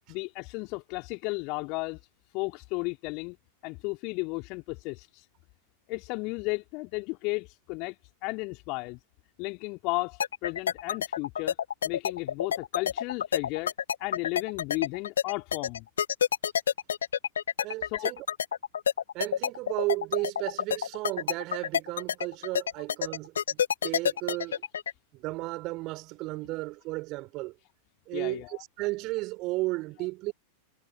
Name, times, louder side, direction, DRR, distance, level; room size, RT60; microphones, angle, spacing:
voice 1, 0.1-2.0 2.3-3.4 3.6-5.3 5.9-9.0 9.4-11.6 11.8-13.7 14.0-15.9 17.8-18.1 20.4-20.5 24.5-24.6 28.1-28.6, left 28 dB, 45° left, 3.8 m, -34 dB
sound 1, 10.2-24.9, left 8 dB, 65° left, 1.0 m, -28 dB
voice 2, 17.6-18.3 19.1-24.6 25.1-27.5 28.1-30.3, right 21 dB, 40° right, 3.9 m, -34 dB
figure-of-eight pair, 90°, 0 cm